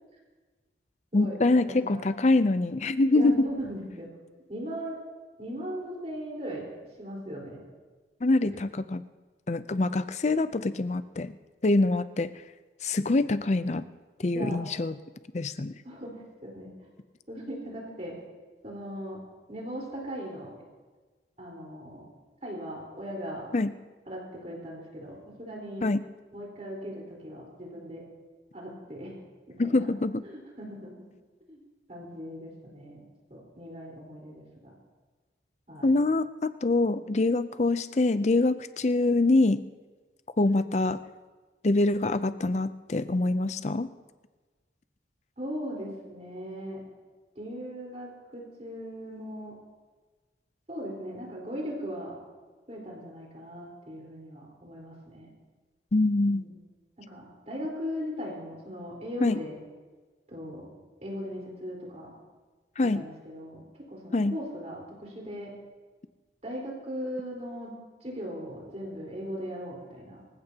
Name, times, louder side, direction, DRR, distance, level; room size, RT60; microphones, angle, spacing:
voice 1, 1.1-3.5 8.2-9.0 9.5-11.3 11.6-12.3 12.8-13.8 14.2-15.0 15.3-15.7 23.5-23.7 25.8-26.0 29.6-30.2 35.8-39.6 40.4-41.0 41.6-43.9 55.9-56.4 59.2-59.4 62.8-63.0 64.1-64.3, left 2 dB, 40° left, 13 dB, 0.5 m, -25 dB
voice 2, 1.6-2.0 3.1-4.1 4.5-5.0 5.4-6.6 7.0-7.6 14.3-14.6 15.8-16.7 17.3-18.2 18.6-19.2 19.5-20.5 21.4-22.0 22.4-23.5 24.1-25.8 26.3-28.0 28.5-29.1 29.5-29.9 30.6-30.9 31.5-31.6 31.9-33.0 33.3-34.7 35.7-35.9 45.4-46.8 47.4-49.5 50.7-52.2 52.7-55.3 56.2-56.6 57.0-59.6 60.3-60.7 61.0-62.1 62.9-63.6 63.9-65.5 66.4-67.7 68.0-70.2, equal, 35° right, -2 dB, 4.2 m, -38 dB
27.0 x 15.5 x 2.9 m, 1.3 s
head